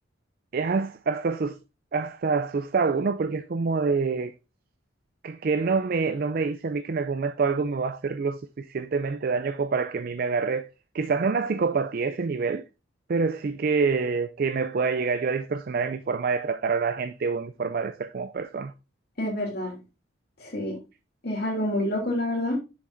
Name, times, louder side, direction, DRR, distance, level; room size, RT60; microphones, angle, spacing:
voice 1, 0.5-1.6 1.9-4.3 5.2-10.7 10.9-12.6 13.1-18.7, right 4 dB, 45° right, 0.4 m, -26 dB
voice 2, 19.2-19.7 20.4-20.8 21.2-22.6, left 1 dB, 50° left, 2.8 m, -27 dB
7.5 x 7.2 x 2.6 m
head